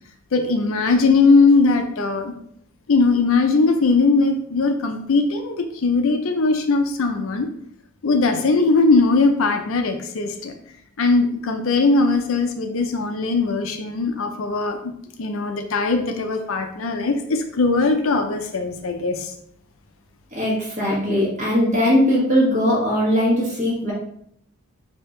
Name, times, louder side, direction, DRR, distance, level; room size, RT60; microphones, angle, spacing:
voice 1, 0.3-2.3 2.9-7.5 8.0-10.5 11.0-14.8 15.2-19.3, left 3 dB, 65° left, 6 dB, 0.5 m, -19 dB
voice 2, 20.3-23.9, equal, 35° right, -5 dB, 1.5 m, -19 dB
4.4 x 2.8 x 3.6 m, 0.69 s
head